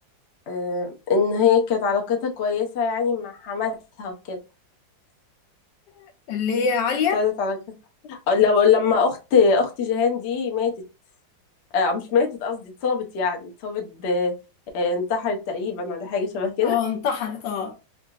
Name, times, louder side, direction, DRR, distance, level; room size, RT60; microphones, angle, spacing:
voice 1, 0.5-4.4 7.1-7.6 8.0-10.7 11.7-14.3 14.7-16.8, left 5 dB, 55° left, 0.7 m, -23 dB
voice 2, 5.9-7.2 16.6-17.8, left 6 dB, 75° left, 1.3 m, -25 dB
3.8 x 2.5 x 2.3 m
omnidirectional pair, 2.0 m